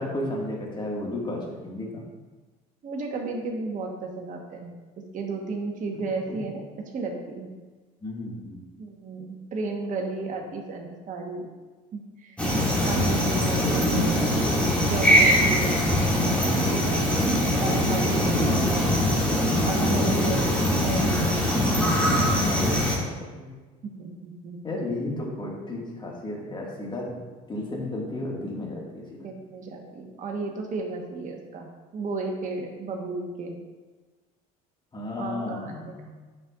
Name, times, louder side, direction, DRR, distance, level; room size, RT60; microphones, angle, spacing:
voice 1, 0.0-2.0 6.3-6.4 8.0-8.6 13.2-13.5 18.4-18.8 22.5-23.5 24.6-27.2 27.5-29.3 34.9-36.1, left 1 dB, 25° left, -2 dB, 1.9 m, -33 dB
voice 2, 2.8-4.7 5.1-6.6 6.9-7.5 8.8-11.5 11.9-12.4 12.8-14.2 14.7-15.9 16.7-17.0 17.6-18.7 19.6-21.4 23.8-24.8 29.2-33.6 35.2-35.9, right 3 dB, 45° right, 1 dB, 1.3 m, -33 dB
sound 1, 12.4-23.0, equal, 5° left, 2.2 m, -22 dB
9.6 x 5.3 x 2.5 m, 1.3 s
supercardioid pair, 80°, 18 cm